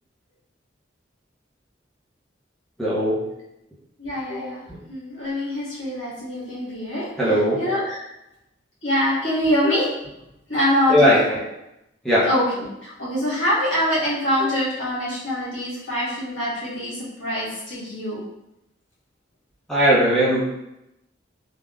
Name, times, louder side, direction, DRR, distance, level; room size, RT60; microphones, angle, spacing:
voice 1, 2.8-3.2 4.7-4.8 7.2-7.6 10.9-11.4 12.0-12.3 19.7-20.4, equal, ahead, -9 dB, 0.6 m, -18 dB
voice 2, 4.0-4.6 4.9-8.0 8.8-10.0 10.5-11.2 12.2-18.2, left 1 dB, 75° left, -8 dB, 1.5 m, -24 dB
3.3 x 2.1 x 2.4 m, 0.89 s
head